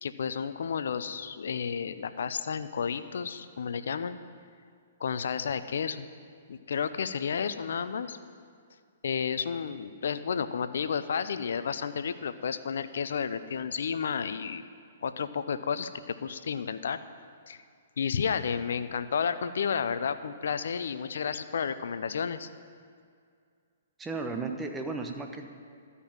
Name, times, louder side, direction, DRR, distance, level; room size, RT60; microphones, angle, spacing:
voice 1, 0.0-4.2 5.0-6.1 6.5-8.2 9.0-14.6 15.0-17.0 17.5-17.6 18.0-22.5, left 6 dB, 70° left, 12 dB, 0.6 m, -31 dB
voice 2, 24.0-25.5, right 3 dB, 15° right, 5 dB, 1.0 m, -34 dB
13.0 x 5.6 x 8.8 m, 2.2 s
hypercardioid pair, 125°, 0 cm